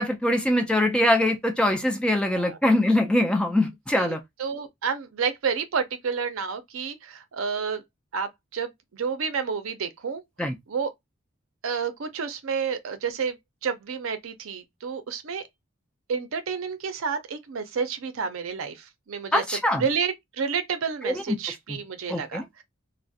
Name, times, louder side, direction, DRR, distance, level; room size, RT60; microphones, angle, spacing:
voice 1, 0.0-4.2 10.4-10.5 19.3-19.8 21.0-21.2 21.7-21.8 22.1-22.4, left 1 dB, 5° left, 0.3 m, -23 dB
voice 2, 2.2-2.6 3.9-7.8 8.1-10.2 10.7-10.9 11.6-13.4 13.6-15.4 16.1-19.4 19.7-22.6, right 6 dB, 75° right, 0.5 m, -30 dB
2.3 x 2.0 x 2.6 m
head